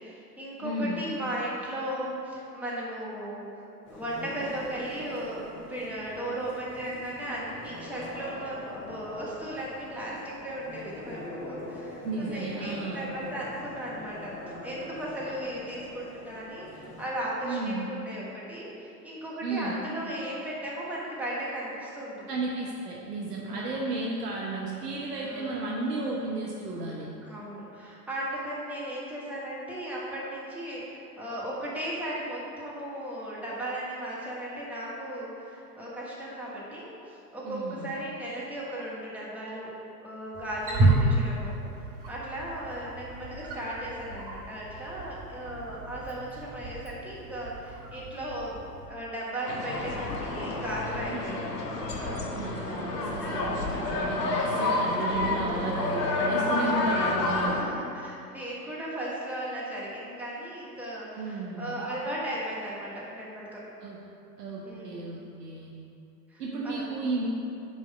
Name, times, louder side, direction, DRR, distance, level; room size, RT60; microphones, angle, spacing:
voice 1, 0.0-3.6 3.9-14.3 14.6-22.1 23.5-23.8 25.2-25.6 27.2-39.7 40.0-48.6 48.9-51.4 51.7-52.3 56.4-56.7 57.5-63.6 64.6-65.2 66.3-66.9, right 1 dB, 5° right, -7 dB, 1.6 m, -36 dB
voice 2, 0.6-1.1 12.0-13.1 17.4-17.9 19.4-19.7 22.3-27.1 37.4-37.9 51.1-51.5 52.1-57.7 61.2-61.7 63.8-64.0 64.4-65.7 66.4-67.3, right 2 dB, 70° right, -2 dB, 1.0 m, -33 dB
sound 1, 3.9-17.1, left 1 dB, 25° left, 1.5 m, -43 dB
Wild animals, 40.3-48.9, right 2 dB, 30° right, 1.7 m, -31 dB
sound 2, 49.5-57.6, left 2 dB, 70° left, 1.3 m, -29 dB
5.4 x 5.0 x 6.2 m, 2.7 s
figure-of-eight pair, 90°, 49 cm